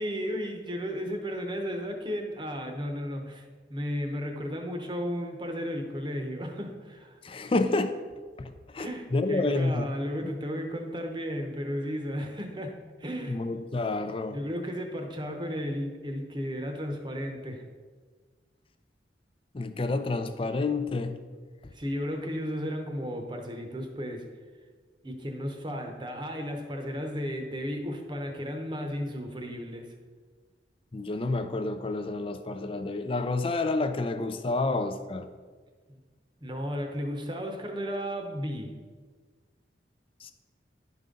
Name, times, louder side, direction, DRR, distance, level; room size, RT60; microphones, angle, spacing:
voice 1, 0.0-7.2 8.8-13.5 14.3-17.6 21.7-24.3 25.0-29.9 35.9-36.0 36.4-38.7, equal, 25° right, 4 dB, 0.9 m, -34 dB
voice 2, 7.2-8.0 8.4-9.9 13.2-14.4 19.5-21.2 30.9-35.3 40.2-40.3, left 2 dB, 30° left, 9 dB, 0.4 m, -29 dB
10.5 x 5.3 x 3.8 m, 1.5 s
head